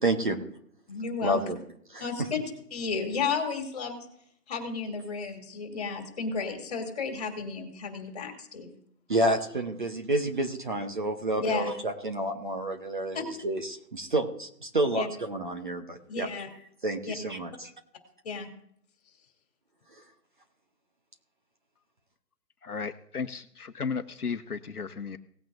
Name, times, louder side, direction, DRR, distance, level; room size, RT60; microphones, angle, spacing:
voice 1, 0.0-0.4 1.2-1.6 1.9-2.3 9.1-16.3 16.8-17.7, right 1 dB, 30° right, 4 dB, 1.1 m, -29 dB
voice 2, 0.9-1.4 2.0-2.4 2.7-4.0 4.5-8.7 11.4-11.7 13.1-13.2 14.9-15.1 16.1-16.5 17.0-17.1 18.2-18.5, left 5 dB, 25° left, 4 dB, 2.9 m, -32 dB
voice 3, 22.6-25.2, left 5 dB, 65° left, 9 dB, 1.1 m, -34 dB
18.5 x 8.9 x 2.6 m, 0.67 s
figure-of-eight pair, 160°, 48 cm